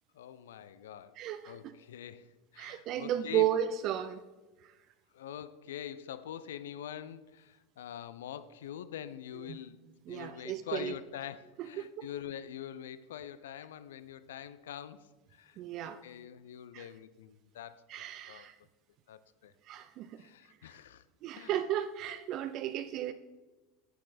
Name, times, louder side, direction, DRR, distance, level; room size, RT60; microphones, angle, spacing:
voice 1, 0.1-1.2 1.5-2.3 2.5-3.5 5.1-9.8 10.1-15.1 15.3-18.5 19.1-19.5 20.2-21.0 21.4-21.5, left 10 dB, 70° left, 0.4 m, -44 dB
voice 2, 1.2-1.6 2.6-4.2 9.5-9.6 10.1-10.9 11.6-12.1 15.6-16.0 16.7-16.9 17.9-18.5 19.7-20.2 21.2-23.1, right 11 dB, 45° right, 0.5 m, -34 dB
10.0 x 8.0 x 4.2 m
figure-of-eight pair, 80°, 0 cm